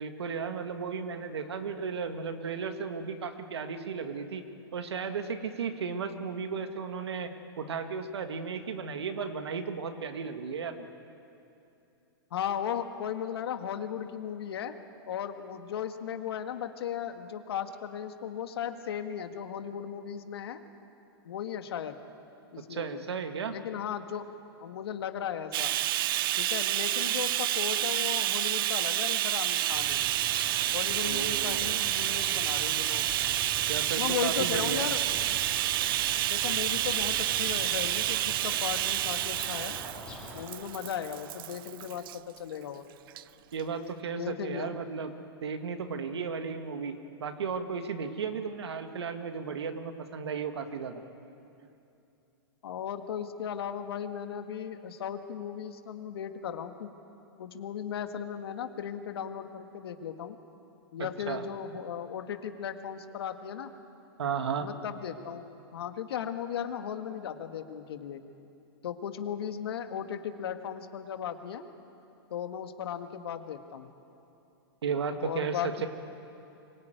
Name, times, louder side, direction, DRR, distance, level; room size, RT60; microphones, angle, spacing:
voice 1, 0.0-4.5 4.7-10.9 22.7-23.6 31.0-31.8 33.7-34.9 43.5-45.1 45.4-51.0 61.0-61.4 64.2-64.7 74.8-75.9, right 6 dB, 85° right, 7 dB, 2.0 m, -34 dB
voice 2, 12.3-14.8 15.1-20.6 21.3-22.0 22.5-23.0 23.5-24.3 24.6-25.7 26.4-30.0 30.7-33.0 34.0-35.0 35.3-35.4 36.3-39.8 40.3-42.9 44.0-44.7 52.6-56.9 57.4-60.4 60.9-63.7 64.6-65.4 65.7-68.2 68.8-71.6 72.3-73.9 75.2-75.9, left 8 dB, 70° left, 7 dB, 1.8 m, -36 dB
Bathtub (filling or washing), 25.5-42.2 43.1-43.2 43.6-43.7, right 14 dB, 55° right, 0.6 m, -29 dB
sound 1, 29.7-40.5, left 2 dB, 10° left, 3.3 m, -44 dB
24.5 x 18.0 x 9.2 m, 2.8 s
hypercardioid pair, 130°, 13 cm